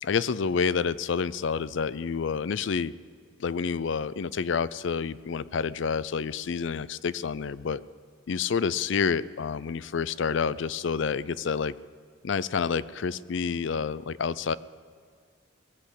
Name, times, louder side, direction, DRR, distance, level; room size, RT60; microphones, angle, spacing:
voice 1, 0.0-2.9 3.4-7.8 8.3-11.7 12.2-14.6, left 6 dB, 60° left, 18 dB, 0.4 m, -28 dB
19.0 x 7.8 x 8.4 m, 2.1 s
head